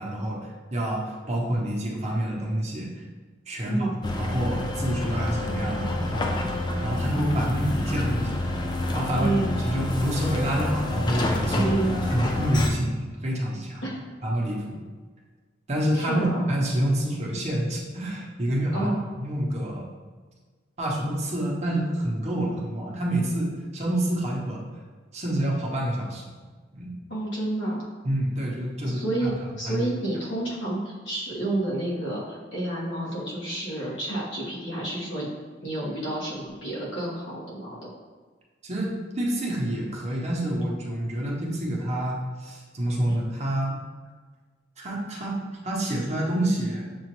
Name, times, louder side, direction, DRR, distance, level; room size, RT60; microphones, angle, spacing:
voice 1, 0.0-3.0 3.5-3.9 4.2-8.4 8.9-9.3 9.6-11.7 12.0-13.8 14.2-14.8 15.7-18.9 19.2-19.9 20.8-24.6 25.1-26.2 26.7-26.9 28.0-29.9 38.6-43.8 44.8-46.9, right 1 dB, 35° right, -3 dB, 0.8 m, -28 dB
voice 2, 3.6-4.0 9.1-9.5 11.5-12.0 13.8-14.0 15.9-16.4 18.7-19.0 27.1-27.9 28.8-29.3 29.6-35.3 35.6-37.9, right 2 dB, 75° left, -5 dB, 1.3 m, -29 dB
sound 1, 4.0-12.7, left 1 dB, 25° left, 0.3 m, -28 dB
6.8 x 2.4 x 3.0 m, 1.4 s
head